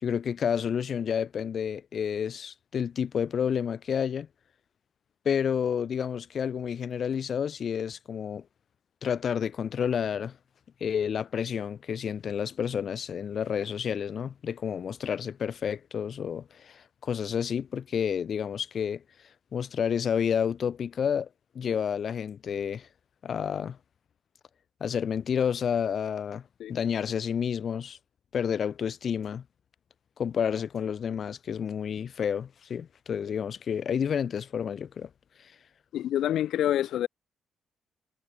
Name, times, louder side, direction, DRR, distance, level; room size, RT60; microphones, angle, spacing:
voice 1, 0.0-4.3 5.2-8.4 9.0-10.4 10.8-19.0 19.5-21.3 21.5-22.9 23.2-23.8 24.8-26.4 26.7-28.0 28.3-29.4 30.2-35.1 35.4-35.5, left 7 dB, 55° left, 4.5 m, -30 dB
voice 2, 35.9-37.1, left 12 dB, 75° left, 0.5 m, -27 dB
cardioid pair, 90°, 0 cm